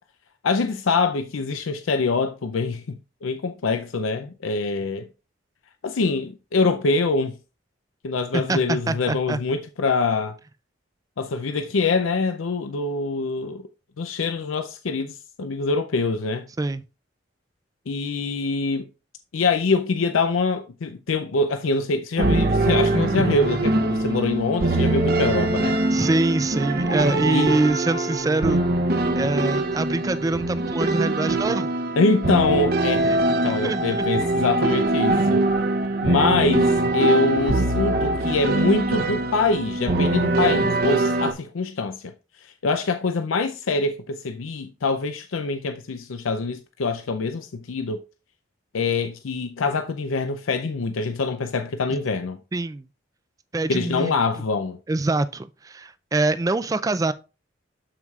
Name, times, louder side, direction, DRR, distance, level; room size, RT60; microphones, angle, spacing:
voice 1, 0.4-5.1 5.8-7.4 8.0-10.4 11.2-13.6 14.0-16.5 17.9-18.9 19.3-25.8 27.3-27.5 32.0-35.4 36.0-42.1 42.4-48.0 48.7-52.4 53.7-54.8, left 3 dB, 90° left, 0.5 m, -24 dB
voice 2, 8.3-9.4 16.6-16.8 25.9-28.6 28.9-31.7 33.0-34.1 52.5-52.8 53.5-54.2 54.9-57.1, right 2 dB, 15° right, 0.3 m, -24 dB
sound 1, 22.2-41.3, right 2 dB, 50° right, 0.7 m, -22 dB
12.5 x 4.7 x 2.4 m
head